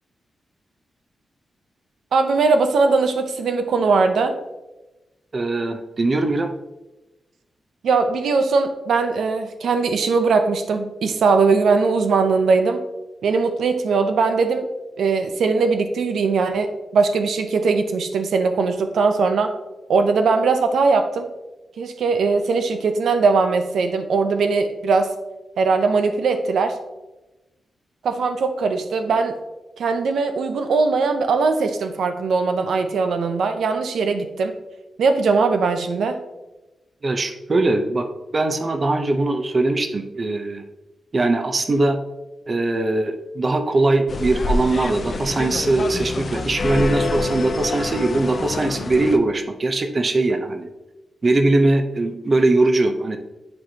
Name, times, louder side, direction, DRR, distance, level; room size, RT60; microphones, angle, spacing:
voice 1, 2.1-4.4 7.8-12.8 13.2-14.7 15.0-19.5 19.9-21.3 21.8-25.1 25.6-26.8 28.0-29.4 29.8-34.5 35.0-36.2, right 4 dB, 85° right, 7 dB, 0.6 m, -20 dB
voice 2, 5.3-6.5 37.0-38.1 38.3-40.6 41.1-42.0 42.5-50.7 51.2-53.2, right 2 dB, 35° right, 7 dB, 0.6 m, -21 dB
sound 1, 44.1-49.2, left 3 dB, 45° left, 0.4 m, -26 dB
10.5 x 4.3 x 2.8 m, 1.1 s
wide cardioid pair, 115°, 0 cm